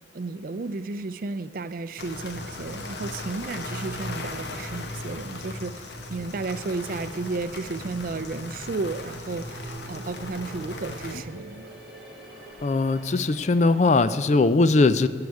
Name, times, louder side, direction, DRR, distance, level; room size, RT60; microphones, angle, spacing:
voice 1, 0.1-11.7, right 3 dB, 50° right, 14 dB, 0.4 m, -33 dB
sound 1, 2.0-11.2, left 2 dB, 65° left, 1.1 m, -37 dB
sound 2, 5.9-14.1, right 1 dB, ahead, 2.6 m, -47 dB
voice 2, 12.6-15.1, left 3 dB, 40° left, 13 dB, 0.4 m, -20 dB
14.0 x 4.8 x 8.3 m, 2.2 s
head